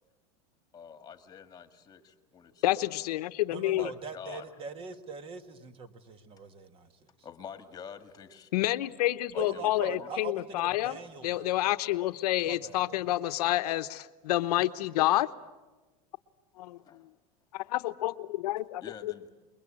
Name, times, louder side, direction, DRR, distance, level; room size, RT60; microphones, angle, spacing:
voice 1, 0.7-2.9 3.7-4.5 7.2-8.5 9.3-10.1 16.9-17.1 18.8-19.3, left 7 dB, 20° left, 8 dB, 1.8 m, -47 dB
voice 2, 2.6-3.9 8.5-11.0 11.2-15.3 16.6-16.8 17.5-19.1, left 15 dB, 80° left, 12 dB, 1.0 m, -29 dB
voice 3, 3.5-7.1 9.4-11.5 12.4-13.0, right 4 dB, 25° right, 10 dB, 1.6 m, -42 dB
28.0 x 22.0 x 8.7 m, 1.2 s
supercardioid pair, 150°, 20 cm